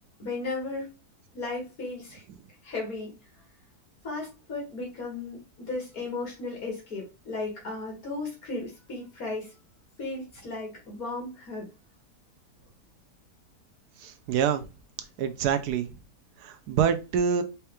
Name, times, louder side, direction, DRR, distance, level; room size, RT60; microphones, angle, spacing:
voice 1, 0.2-0.9 1.3-2.2 2.6-3.2 4.0-9.5 10.0-11.7, left 3 dB, 65° left, 1.9 m, -35 dB
voice 2, 14.0-14.6 15.2-15.9 16.4-17.4, right 7 dB, 75° right, 1.2 m, -26 dB
4.6 x 2.9 x 3.3 m
omnidirectional pair, 1.7 m